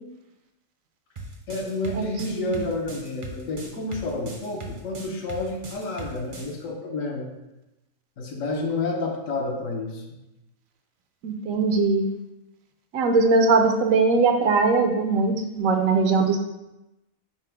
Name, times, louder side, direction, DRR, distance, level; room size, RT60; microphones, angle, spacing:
sound 1, 1.2-6.5, right 3 dB, 55° right, 0.3 m, -39 dB
voice 1, 1.5-7.3 8.2-10.2, left 2 dB, 75° left, 1 dB, 1.2 m, -30 dB
voice 2, 11.2-12.1 12.9-16.4, right 4 dB, 80° right, 5 dB, 1.0 m, -20 dB
5.7 x 2.1 x 4.5 m, 0.95 s
omnidirectional pair, 1.4 m